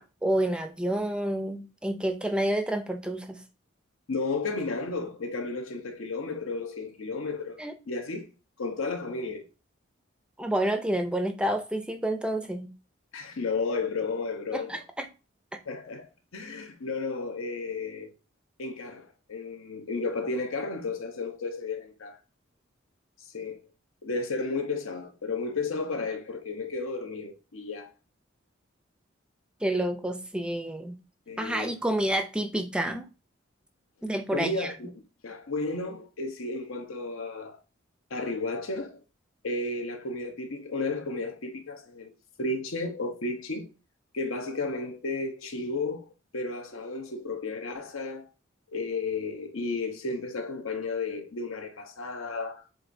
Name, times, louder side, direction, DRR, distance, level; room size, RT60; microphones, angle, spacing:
voice 1, 0.0-3.4 7.6-7.7 10.4-12.7 14.5-15.1 29.6-31.0 31.4-33.0 34.0-34.7, right 1 dB, 5° right, 0.3 m, -29 dB
voice 2, 4.1-8.3 8.6-9.4 13.1-14.8 15.7-18.1 18.6-22.2 23.3-23.6 24.0-27.9 31.3-31.7 34.3-34.9 35.2-37.6 38.1-39.0 39.4-42.1 42.4-43.7 44.1-46.1 46.3-48.2 48.7-52.6, left 3 dB, 90° left, 0.8 m, -33 dB
7.5 x 2.5 x 2.6 m
head